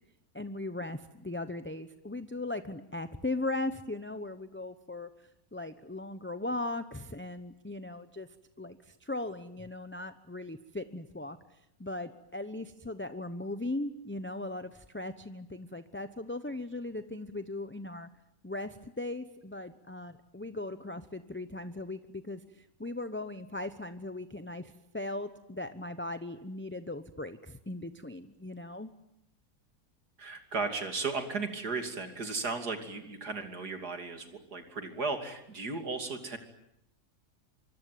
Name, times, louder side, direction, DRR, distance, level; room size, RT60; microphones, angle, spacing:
voice 1, 0.3-5.1 5.5-8.3 8.6-18.1 18.4-28.9, left 2 dB, 10° left, 10 dB, 0.6 m, -38 dB
voice 2, 30.2-36.4, right 4 dB, 85° right, 6 dB, 3.5 m, -35 dB
25.0 x 24.5 x 9.3 m, 0.81 s
omnidirectional pair, 1.7 m